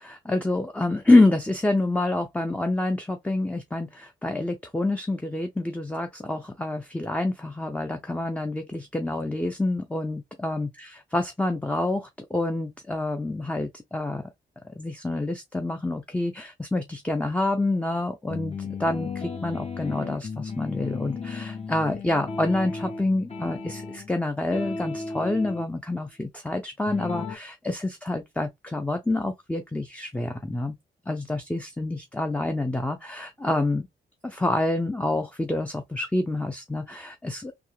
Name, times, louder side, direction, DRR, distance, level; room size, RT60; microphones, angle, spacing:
voice 1, 0.0-14.2 14.8-30.8 31.1-33.9 34.2-37.5, left 2 dB, 5° left, 0.6 m, -27 dB
sound 1, 18.3-24.1 24.5-25.6 26.9-27.4, left 4 dB, 35° left, 1.0 m, -35 dB
3.4 x 2.8 x 3.1 m
cardioid pair, 90°, 19 cm